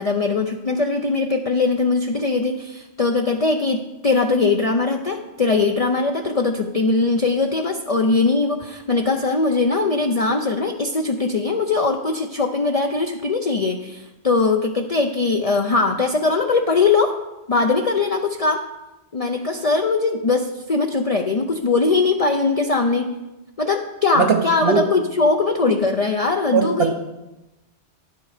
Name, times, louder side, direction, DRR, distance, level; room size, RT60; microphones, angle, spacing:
voice 1, 0.0-17.2 17.5-18.7 19.1-23.2 23.6-26.9, left 3 dB, 40° left, 3 dB, 0.6 m, -21 dB
voice 2, 24.2-24.9 26.5-26.9, right 5 dB, 70° right, 4 dB, 0.9 m, -19 dB
10.5 x 7.7 x 4.9 m, 1.0 s
omnidirectional pair, 1.1 m